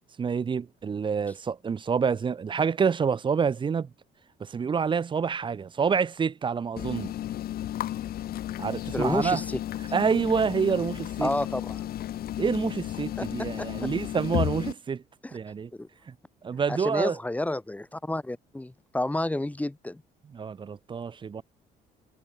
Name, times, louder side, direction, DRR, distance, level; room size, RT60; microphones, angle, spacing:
voice 1, 0.2-3.9 4.4-7.1 8.6-9.4 9.9-11.3 12.4-15.0 15.3-15.7 16.1-16.2 16.4-17.2 20.3-21.4, right 6 dB, 30° right, 0.7 m, -27 dB
sound 1, 6.8-14.7, left 12 dB, 65° left, 2.5 m, -33 dB
voice 2, 8.9-9.6 11.2-11.9 13.2-13.7 15.2-15.4 15.7-15.9 16.7-20.0, left 1 dB, 10° left, 3.7 m, -30 dB
cardioid pair, 110°, 17 cm